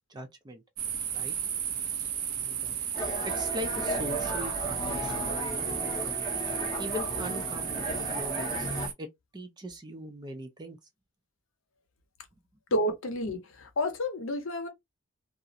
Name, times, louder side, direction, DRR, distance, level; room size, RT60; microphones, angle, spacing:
voice 1, 0.1-0.6 1.1-1.3 2.4-2.8 3.2-5.8 6.8-8.7 9.0-10.8, equal, 20° right, 0.4 m, -40 dB
sound 1, 0.8-8.9, right 8 dB, 85° right, 0.6 m, -34 dB
sound 2, 2.9-8.9, equal, 20° left, 0.6 m, -35 dB
voice 2, 12.7-14.7, left 1 dB, 65° left, 0.6 m, -30 dB
2.4 x 2.0 x 2.6 m
head